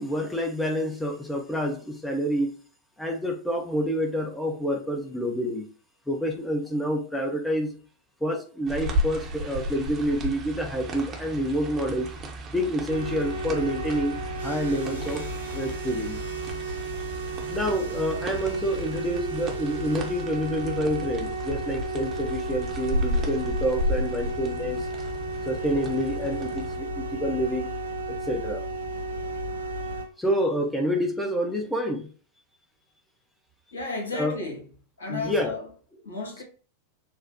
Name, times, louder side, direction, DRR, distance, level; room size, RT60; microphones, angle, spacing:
voice 1, 0.0-2.6 3.0-5.7 6.1-7.8 8.2-12.1 12.5-14.2 14.4-15.2 15.5-16.2 17.5-24.9 25.5-27.7 28.1-28.6 30.2-32.1 34.1-34.3 35.1-35.5, equal, 5° left, 0.9 m, -28 dB
sound 1, 8.7-26.8, equal, 25° right, 1.0 m, -34 dB
sound 2, 12.9-30.0, right 2 dB, 75° right, 0.9 m, -33 dB
voice 2, 33.7-34.7 35.0-35.7 36.0-36.4, left 3 dB, 70° left, 1.4 m, -33 dB
6.7 x 2.3 x 2.8 m
figure-of-eight pair, 90°, 0 cm